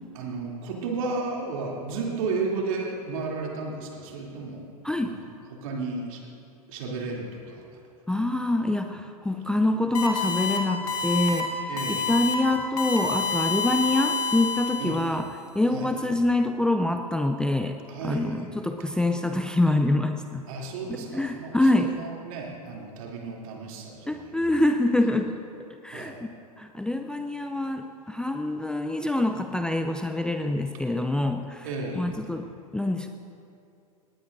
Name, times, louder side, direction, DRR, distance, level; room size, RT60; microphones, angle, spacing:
voice 1, 0.1-4.6 5.0-5.2 5.5-6.2 6.7-7.6 11.7-12.1 14.8-15.0 15.7-15.9 17.9-18.5 20.5-24.3 25.9-26.2 31.6-32.2, right 3 dB, 60° right, -2 dB, 3.1 m, -33 dB
voice 2, 4.8-5.2 8.1-15.3 15.5-20.4 20.9-21.9 24.1-25.3 25.8-26.2 26.6-31.7 32.0-32.5 32.7-33.1, left 2 dB, 5° left, 6 dB, 0.5 m, -25 dB
sound 1, 9.9-10.6 10.9-11.4 11.8-12.3 12.8-15.1, left 4 dB, 75° left, 2.1 m, -28 dB
19.0 x 18.5 x 2.7 m, 2.6 s
figure-of-eight pair, 95°, 19 cm